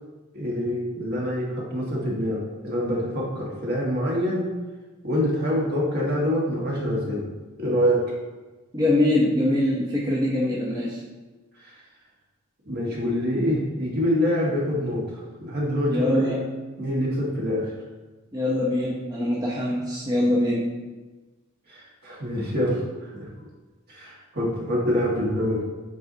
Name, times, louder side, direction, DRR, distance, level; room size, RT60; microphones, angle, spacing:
voice 1, 0.3-4.4 5.0-7.3 7.6-8.0 11.6-11.8 12.6-16.4 16.8-17.7 21.7-23.3 23.9-25.6, equal, 50° right, -4 dB, 1.7 m, -26 dB
voice 2, 8.7-11.0 15.9-16.4 18.3-20.7, left 1 dB, 20° right, -5 dB, 0.8 m, -23 dB
7.9 x 4.7 x 2.8 m, 1.2 s
head